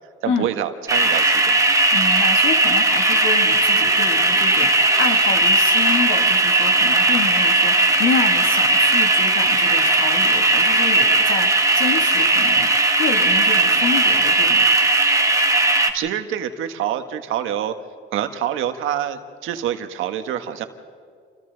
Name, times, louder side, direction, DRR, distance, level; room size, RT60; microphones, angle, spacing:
voice 1, 0.2-1.6 15.9-17.7 18.1-20.7, right 10 dB, 85° right, 8 dB, 1.4 m, -26 dB
sound 1, 0.9-15.9, right 2 dB, 15° right, 1.8 m, -17 dB
voice 2, 1.9-12.7 13.0-14.7, left 6 dB, 80° left, 4 dB, 2.5 m, -28 dB
29.0 x 25.5 x 4.0 m, 2.1 s
cardioid pair, 90°, 20 cm